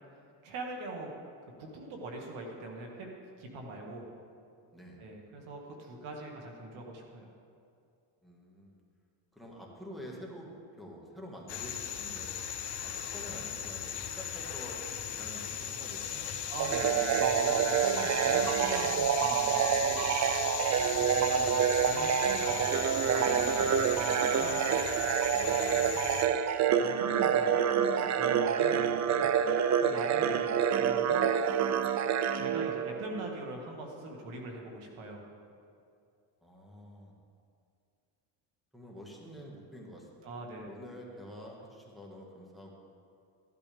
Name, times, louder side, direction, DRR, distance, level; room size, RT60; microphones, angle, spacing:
voice 1, 0.4-1.1 1.6-4.0 5.0-7.3 16.5-20.0 20.9-24.6 26.7-29.3 29.8-31.8 32.3-35.2 40.2-40.8, right 2 dB, 75° right, 0 dB, 2.1 m, -42 dB
voice 2, 8.2-8.8 9.3-12.3 12.8-14.8 15.1-16.3 18.3-18.5 20.7-21.0 25.3-26.0 36.4-37.1 38.7-40.3 40.7-42.8, equal, ahead, -2 dB, 1.8 m, -48 dB
sound 1, 11.5-26.3, left 8 dB, 55° left, 1.1 m, -37 dB
sound 2, 16.6-33.3, right 8 dB, 40° right, 0.4 m, -27 dB
14.5 x 11.5 x 3.5 m, 2.4 s
cardioid pair, 130°, 48 cm